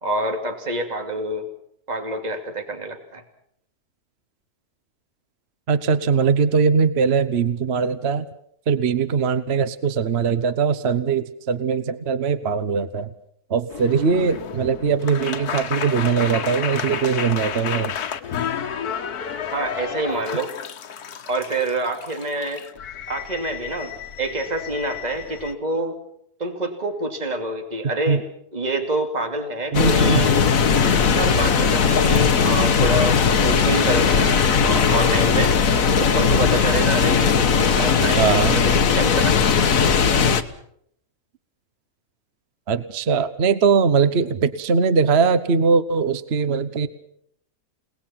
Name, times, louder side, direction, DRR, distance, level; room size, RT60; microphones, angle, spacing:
voice 1, 0.0-1.5 1.9-3.2 19.5-20.5 21.3-22.6 23.1-26.0 26.4-28.2 28.5-30.4 31.2-35.5 36.0-39.5, right 2 dB, 25° right, 5 dB, 2.8 m, -27 dB
voice 2, 5.7-8.3 8.7-13.1 13.5-17.9 28.1-28.2 29.7-30.3 38.2-38.6 42.7-46.9, right 5 dB, 45° right, 13 dB, 1.2 m, -21 dB
sound 1, 13.7-25.5, left 8 dB, 85° left, 1.6 m, -31 dB
sound 2, 29.7-40.4, left 6 dB, 65° left, 1.6 m, -18 dB
30.0 x 19.0 x 5.8 m, 0.69 s
omnidirectional pair, 1.6 m